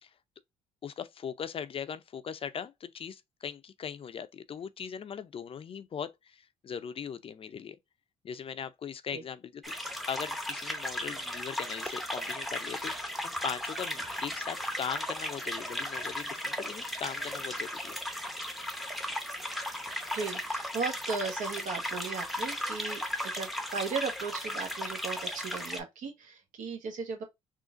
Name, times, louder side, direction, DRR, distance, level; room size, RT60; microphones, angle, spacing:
voice 1, 0.8-7.8 8.2-9.7 10.1-12.9 13.2-18.0, left 7 dB, 40° left, 0.5 m, -39 dB
sound 1, 9.6-25.8, equal, ahead, 0.7 m, -36 dB
voice 2, 20.1-27.2, right 5 dB, 70° right, 1.1 m, -36 dB
3.8 x 2.4 x 2.5 m
supercardioid pair, 70°, 14 cm